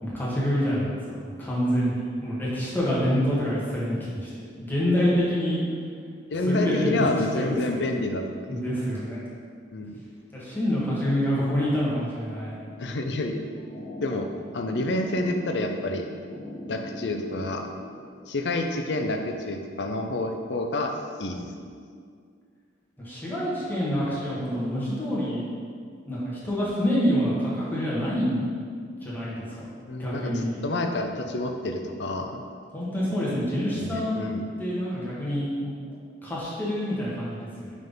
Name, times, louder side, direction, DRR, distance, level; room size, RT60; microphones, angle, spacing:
voice 1, 0.0-5.6 6.5-7.1 7.3-7.8 8.5-9.2 10.3-12.6 23.0-25.5 26.1-28.5 29.0-30.6 32.7-34.2 34.6-35.8 36.2-37.7, equal, 10° left, -8 dB, 1.4 m, -27 dB
voice 2, 6.3-8.5 9.7-10.0 12.8-13.4 14.0-16.1 16.7-17.7 18.3-20.9 21.2-21.5 29.9-32.4 33.8-34.5, left 2 dB, 65° left, 4 dB, 0.5 m, -28 dB
sound 1, 13.3-18.2, left 1 dB, 40° left, 1.1 m, -41 dB
5.6 x 3.7 x 5.4 m, 2.1 s
head